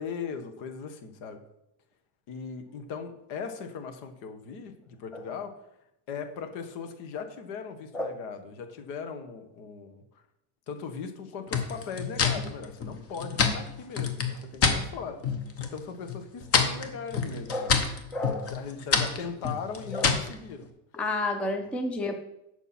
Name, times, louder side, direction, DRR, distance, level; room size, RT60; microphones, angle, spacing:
voice 1, 0.0-1.4 2.3-5.6 6.1-10.2 10.7-15.2 15.6-17.8 18.5-20.7 21.4-21.7, left 6 dB, 80° left, 7 dB, 1.6 m, -39 dB
sound 1, 11.5-14.8 15.2-15.8 16.1-20.3, left 5 dB, 30° left, 1.1 m, -27 dB
voice 2, 18.1-18.5 19.9-20.1 20.9-22.1, left 2 dB, 5° left, 5 dB, 0.3 m, -30 dB
11.5 x 7.0 x 4.5 m, 0.82 s
cardioid pair, 175°, 46 cm